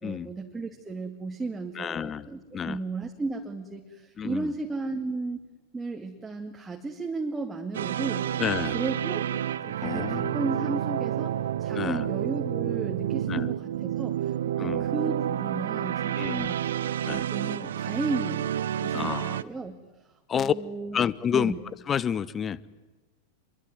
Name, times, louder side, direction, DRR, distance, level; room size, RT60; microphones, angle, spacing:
voice 1, 0.0-5.4 5.7-8.3 8.7-9.3 9.6-14.3 14.6-16.6 17.1-18.5 18.8-21.1 21.3-21.6, right 3 dB, 10° right, 3 dB, 2.3 m, -34 dB
voice 2, 1.8-2.3 2.5-2.8 4.2-4.5 8.4-8.8 9.8-10.4 11.7-12.1 13.3-13.5 14.6-14.9 16.2-16.5 17.0-17.3 18.9-19.4 20.3-20.5 20.9-21.5 21.9-22.7, left 8 dB, 25° left, 20 dB, 1.0 m, -29 dB
sound 1, 7.7-19.4, right 10 dB, 60° right, 0.9 m, -29 dB
26.5 x 23.0 x 9.6 m, 1.2 s
figure-of-eight pair, 90°, 0 cm